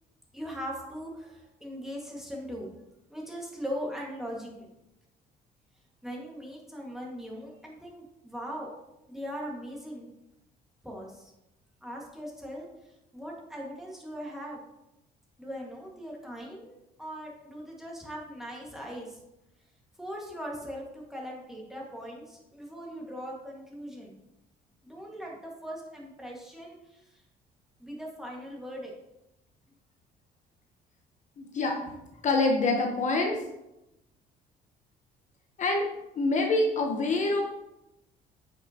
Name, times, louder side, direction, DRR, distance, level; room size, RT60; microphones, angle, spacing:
voice 1, 0.3-2.8 3.1-4.7 6.0-8.7 9.1-10.1 10.8-11.3 11.8-12.7 13.1-14.6 15.4-19.2 20.0-24.1 24.8-27.2 27.8-28.9, equal, ahead, -3 dB, 1.8 m, -40 dB
voice 2, 31.4-31.8 32.2-33.4 35.6-35.9 36.2-37.4, left 2 dB, 45° left, 2 dB, 1.0 m, -25 dB
8.5 x 5.3 x 2.9 m, 0.91 s
cardioid pair, 110°, 17 cm